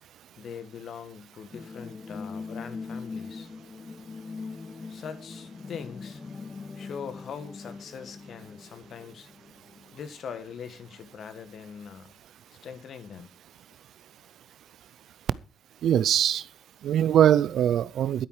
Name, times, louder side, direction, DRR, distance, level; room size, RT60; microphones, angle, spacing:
voice 1, 0.4-3.5 4.9-6.2 6.7-9.3 9.9-12.1 12.6-13.3, left 7 dB, 60° left, 1.7 m, -41 dB
sound 1, 1.5-11.1 11.4-11.5, left 4 dB, 30° left, 0.6 m, -42 dB
voice 2, 15.8-16.4 16.8-18.3, right 10 dB, 70° right, 0.5 m, -22 dB
11.5 x 10.0 x 4.8 m
cardioid pair, 90°, 0 cm